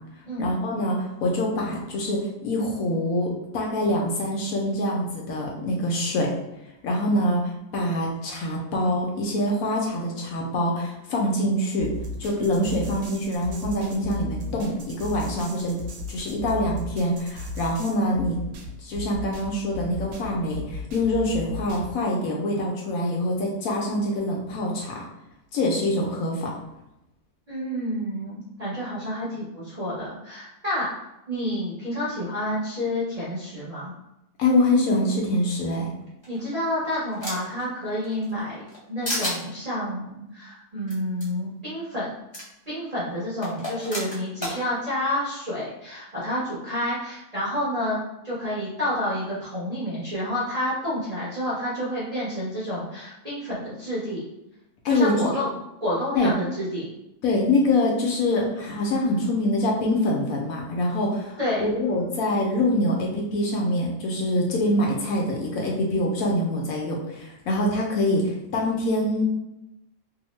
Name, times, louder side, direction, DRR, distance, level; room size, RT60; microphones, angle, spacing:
voice 1, 0.4-6.3 6.8-11.9 12.2-15.8 16.1-18.4 18.8-25.0 25.5-26.5 34.4-35.9 54.8-55.5 56.1-56.3 57.2-69.2, left 1 dB, 70° left, -1 dB, 0.9 m, -25 dB
sound 1, 11.8-21.9, left 1 dB, 70° right, 0.9 m, -36 dB
voice 2, 27.5-30.9 31.3-33.9 36.3-38.6 38.9-42.1 42.7-48.0 48.2-54.2 54.9-55.5 55.8-56.8 61.4-61.7, left 1 dB, 35° right, -9 dB, 0.6 m, -29 dB
sound 2, 36.2-37.6 38.0-38.8 39.0-39.4 40.9-41.0 41.2-41.3 42.3-42.4 43.4-44.6, left 1 dB, 25° left, 0.7 m, -31 dB
2.8 x 2.0 x 3.0 m, 0.87 s
omnidirectional pair, 1.6 m